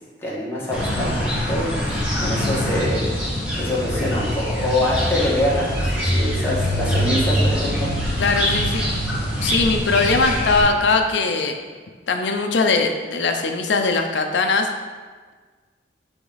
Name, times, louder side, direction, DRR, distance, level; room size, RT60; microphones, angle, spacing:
voice 1, 0.2-1.1 1.5-3.1 3.5-7.9, left 1 dB, 15° left, -6 dB, 1.4 m, -25 dB
sound 1, 0.7-10.6, equal, 5° right, 1.8 m, -23 dB
voice 2, 8.2-8.8 9.4-11.6 12.1-14.7, left 4 dB, 85° left, 4 dB, 0.5 m, -20 dB
8.2 x 3.5 x 3.9 m, 1.5 s
head